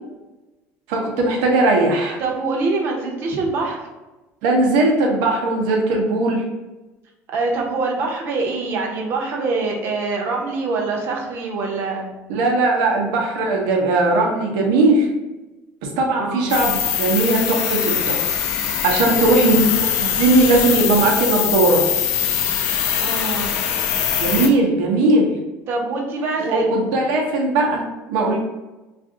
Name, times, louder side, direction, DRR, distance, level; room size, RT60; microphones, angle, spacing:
voice 1, 0.9-2.2 4.4-6.4 12.3-15.1 15.8-18.3 18.8-19.7 20.0-21.8 24.2-25.3 26.4-28.4, right 2 dB, 85° right, 0 dB, 0.8 m, -18 dB
voice 2, 2.2-3.9 7.3-12.1 16.2-16.5 19.1-19.3 23.0-23.5 25.7-26.7, right 3 dB, 45° right, 0 dB, 0.7 m, -24 dB
sound 1, 16.5-24.5, left 9 dB, 65° left, 0.4 m, -22 dB
2.5 x 2.5 x 3.7 m, 1.1 s
cardioid pair, 160°, 6 cm